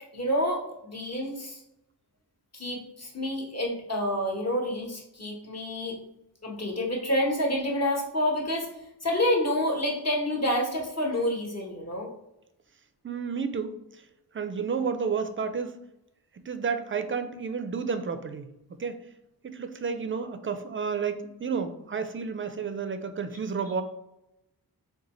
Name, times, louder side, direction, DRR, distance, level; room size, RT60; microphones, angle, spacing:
voice 1, 0.1-1.6 2.5-6.0 6.4-8.7 9.0-12.1, left 1 dB, 40° left, -1 dB, 1.0 m, -28 dB
voice 2, 13.0-13.8 14.3-15.8 16.5-18.5 18.8-19.0 19.4-23.8, right 5 dB, 30° right, 8 dB, 0.4 m, -31 dB
3.8 x 2.3 x 3.0 m, 0.86 s
cardioid pair, 55°, 40 cm